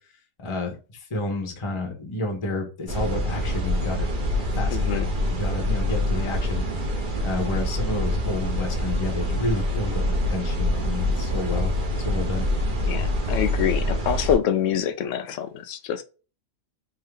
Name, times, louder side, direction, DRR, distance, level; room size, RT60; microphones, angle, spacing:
voice 1, 0.4-4.1 4.5-6.6 7.2-12.5, left 2 dB, 25° left, 0.9 m, -30 dB
sound 1, 2.9-14.4, left 1 dB, 40° right, 0.9 m, -25 dB
voice 2, 4.7-5.1 12.9-16.0, left 9 dB, 70° left, 0.7 m, -26 dB
3.6 x 2.8 x 3.3 m
omnidirectional pair, 1.7 m